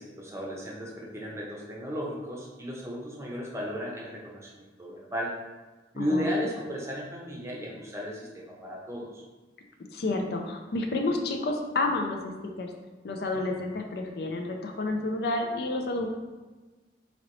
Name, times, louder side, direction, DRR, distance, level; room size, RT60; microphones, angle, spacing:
voice 1, 0.0-5.3 5.9-9.2 13.5-13.7, equal, 15° right, -3 dB, 0.7 m, -34 dB
voice 2, 6.0-6.3 9.9-12.2 12.6-12.7 13.0-16.1, left 2 dB, 60° left, 3 dB, 0.4 m, -30 dB
4.0 x 2.9 x 3.0 m, 1.2 s
head